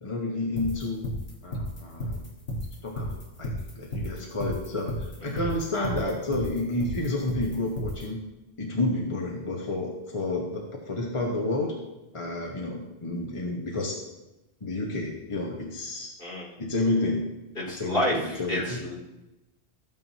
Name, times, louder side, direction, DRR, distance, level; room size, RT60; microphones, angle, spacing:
voice 1, 0.0-1.1 1.4-2.3 2.8-8.2 8.6-11.7 12.1-13.9 14.6-16.1 16.6-17.3 17.8-18.8, left 2 dB, 30° left, -1 dB, 1.3 m, -30 dB
sound 1, 0.6-8.0, equal, 75° left, 1.8 m, -32 dB
voice 2, 16.2-16.5 17.6-18.1 18.5-18.9, left 1 dB, 60° left, -5 dB, 3.0 m, -29 dB
14.0 x 9.1 x 2.8 m, 0.99 s
omnidirectional pair, 1.1 m